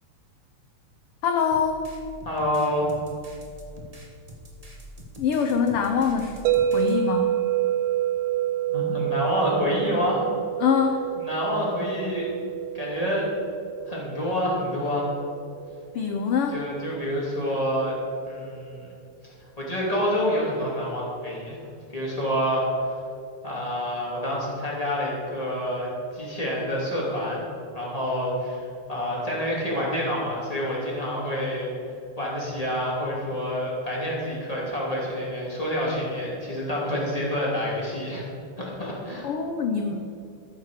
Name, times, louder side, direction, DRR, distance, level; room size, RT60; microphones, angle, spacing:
voice 1, 1.2-1.9 5.2-6.4 6.7-7.3 10.6-11.0 15.9-16.6 39.2-40.0, left 6 dB, 80° left, 4 dB, 1.2 m, -24 dB
sound 1, 1.5-6.9, equal, 30° right, 0.6 m, -44 dB
voice 2, 2.2-2.9 8.7-10.2 11.2-12.3 12.7-13.2 13.9-15.1 16.5-17.9 18.3-18.9 19.2-21.6 21.9-23.0 23.4-27.4 27.7-31.7 32.2-38.2 38.6-39.3, equal, 10° left, -5 dB, 2.7 m, -28 dB
sound 2, 6.5-16.5, right 11 dB, 80° right, 2.2 m, -28 dB
13.5 x 7.5 x 6.6 m, 2.5 s
omnidirectional pair, 3.5 m